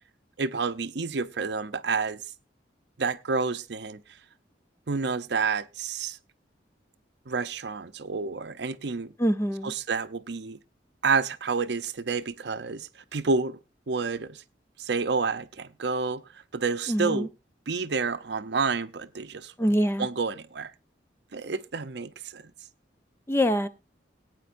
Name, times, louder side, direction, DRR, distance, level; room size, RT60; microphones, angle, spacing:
voice 1, 0.4-2.2 3.0-4.0 4.9-6.2 7.3-9.1 9.6-10.6 11.0-13.6 13.9-14.4 14.8-16.2 16.5-17.3 17.7-19.5 20.0-20.7 21.3-22.4, right 4 dB, 65° right, 0.6 m, -29 dB
voice 2, 9.2-9.7 16.9-17.3 19.6-20.1 23.3-23.7, equal, 15° left, 0.6 m, -24 dB
20.0 x 9.2 x 2.5 m
head